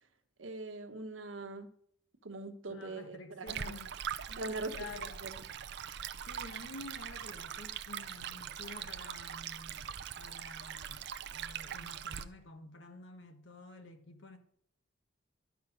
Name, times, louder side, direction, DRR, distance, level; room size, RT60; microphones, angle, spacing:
voice 1, 0.4-1.7 2.2-3.6 4.3-4.7 5.2-5.3, right 2 dB, 85° right, 1.2 m, -41 dB
voice 2, 2.7-4.0 4.7-5.2 6.2-14.4, left 2 dB, 70° left, 1.3 m, -50 dB
Stream, 3.5-12.2, right 8 dB, 60° right, 0.5 m, -42 dB
12.0 x 5.5 x 6.4 m
head